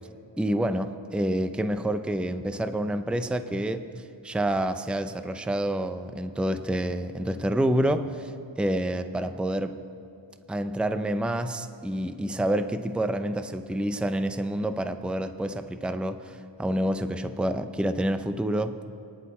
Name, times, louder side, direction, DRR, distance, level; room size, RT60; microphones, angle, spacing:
voice 1, 0.4-9.8 10.5-18.8, right 1 dB, ahead, 9 dB, 0.6 m, -28 dB
29.0 x 10.5 x 4.2 m, 2.7 s
wide cardioid pair, 105°, 47 cm